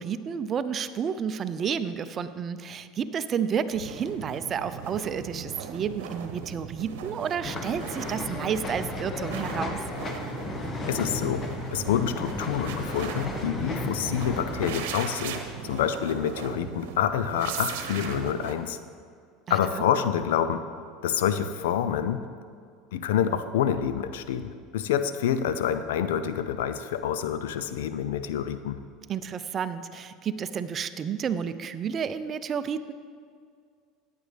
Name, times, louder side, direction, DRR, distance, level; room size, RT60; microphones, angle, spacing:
voice 1, 0.0-9.8 19.5-19.6 29.1-32.9, right 7 dB, 40° right, 12 dB, 0.6 m, -31 dB
sound 1, 3.7-18.5, right 7 dB, 75° right, 1.0 m, -38 dB
sound 2, 7.4-14.9, left 2 dB, 30° left, 1.3 m, -34 dB
voice 2, 10.9-11.5 11.7-18.8 19.5-20.6 21.0-22.3 22.9-28.8, left 9 dB, 80° left, 11 dB, 0.6 m, -27 dB
15.0 x 9.2 x 3.4 m, 2.2 s
hypercardioid pair, 80°, 0 cm